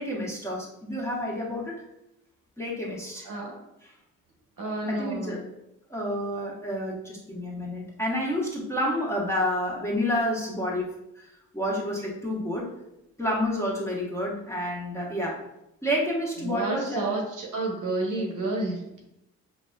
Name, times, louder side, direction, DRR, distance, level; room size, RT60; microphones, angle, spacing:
voice 1, 0.0-1.8 2.6-3.3 4.9-5.4 5.9-10.9 11.1-11.3 11.5-12.7 13.2-15.4 15.8-17.1, equal, 5° left, -4 dB, 1.1 m, -29 dB
voice 2, 3.2-3.6 4.6-5.5 16.4-19.0, right 2 dB, 50° right, -1 dB, 1.0 m, -30 dB
5.2 x 2.1 x 2.3 m, 0.84 s
hypercardioid pair, 45°, 41 cm